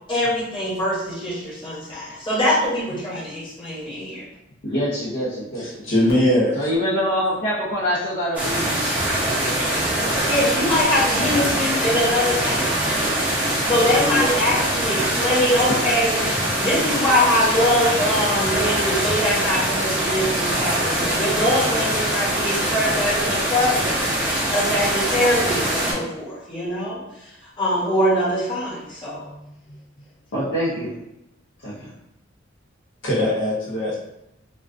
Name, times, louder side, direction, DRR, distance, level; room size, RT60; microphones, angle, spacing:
voice 1, 0.1-4.2 10.3-12.7 13.7-16.3 16.6-27.3 27.6-29.3, left 1 dB, 25° left, -9 dB, 1.0 m, -23 dB
voice 2, 4.6-5.8 6.5-10.2 15.7-15.8 29.3-29.4 29.7-29.8 30.3-30.9 31.6-31.9, equal, 60° left, -9 dB, 0.6 m, -26 dB
voice 3, 5.5-6.7 10.9-11.2 33.0-34.0, left 1 dB, 80° left, -7 dB, 1.0 m, -21 dB
sound 1, 8.3-25.9, right 1 dB, 10° right, 0.6 m, -23 dB
2.3 x 2.2 x 2.4 m, 0.86 s
head